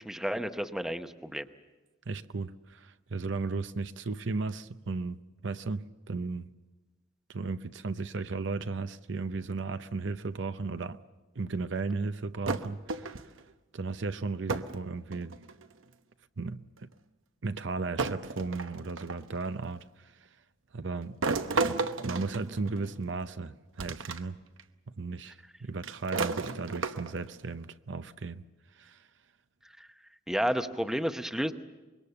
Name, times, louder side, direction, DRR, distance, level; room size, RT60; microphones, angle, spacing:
voice 1, 0.0-1.5 29.8-29.9 30.3-31.5, equal, 5° right, 0.8 m, -31 dB
voice 2, 2.1-6.5 7.3-11.0 11.4-13.3 13.7-15.4 16.4-16.9 17.4-20.1 20.7-21.2 21.5-24.4 25.0-28.4 28.7-29.0, right 3 dB, 65° right, 0.7 m, -35 dB
sound 1, 12.5-13.4 14.5-14.8 15.1-15.7 16.8-16.9 18.0-19.3 21.2-23.1 23.8-24.2 24.6-24.7 25.8-27.3, right 3 dB, 90° right, 0.9 m, -33 dB
25.5 x 22.5 x 6.9 m
head